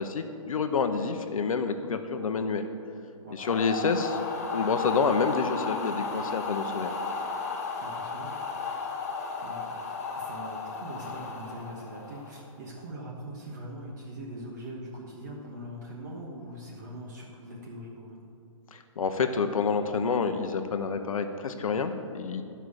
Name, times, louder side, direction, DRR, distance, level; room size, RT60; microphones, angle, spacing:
voice 1, 0.0-2.7 3.3-4.2 4.5-6.9 18.7-22.4, left 5 dB, 75° left, 8 dB, 0.9 m, -28 dB
sound 1, 3.4-12.5, left 4 dB, 30° left, 0.8 m, -34 dB
voice 2, 7.8-8.7 9.4-9.6 10.1-18.2, right 1 dB, 35° right, -3 dB, 1.2 m, -42 dB
12.5 x 5.6 x 6.4 m, 2.6 s
hypercardioid pair, 180°, 18 cm